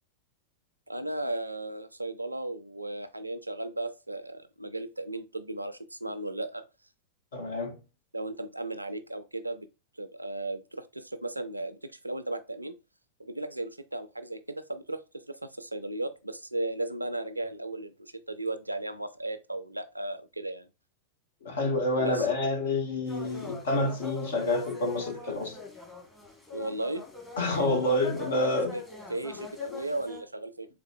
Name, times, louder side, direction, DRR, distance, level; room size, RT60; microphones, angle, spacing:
voice 1, 0.9-6.6 8.1-9.7 10.0-12.7 13.2-15.0 15.3-20.7 22.0-22.3 26.5-27.0 28.3-28.8 29.1-30.7, right 2 dB, 85° right, 0.3 m, -35 dB
voice 2, 7.3-7.8 21.4-25.6 27.4-28.7, left 2 dB, 60° left, 1.0 m, -28 dB
sound 1, 23.1-30.2, left 5 dB, 5° left, 1.3 m, -41 dB
3.7 x 3.5 x 2.2 m
figure-of-eight pair, 90°, 0 cm